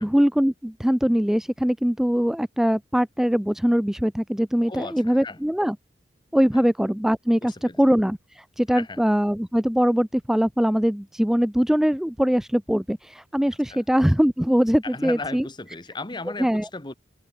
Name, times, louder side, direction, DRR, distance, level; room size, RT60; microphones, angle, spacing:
voice 1, 0.0-5.8 6.3-15.4 16.4-16.7, equal, 5° right, 0.4 m, -22 dB
voice 2, 4.7-5.4 6.5-6.6 7.4-7.8 8.7-9.0 13.7-13.8 14.8-16.9, left 3 dB, 25° left, 1.6 m, -36 dB
head